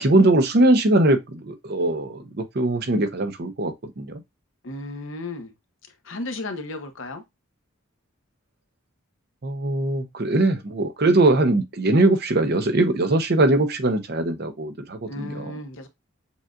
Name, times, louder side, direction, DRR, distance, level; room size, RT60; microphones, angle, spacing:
voice 1, 0.0-2.2 2.5-4.2 9.4-15.5, right 2 dB, 50° right, 0.7 m, -21 dB
voice 2, 4.6-5.5 6.0-7.2 15.1-15.9, left 2 dB, 65° left, 0.8 m, -34 dB
7.0 x 2.5 x 2.4 m
head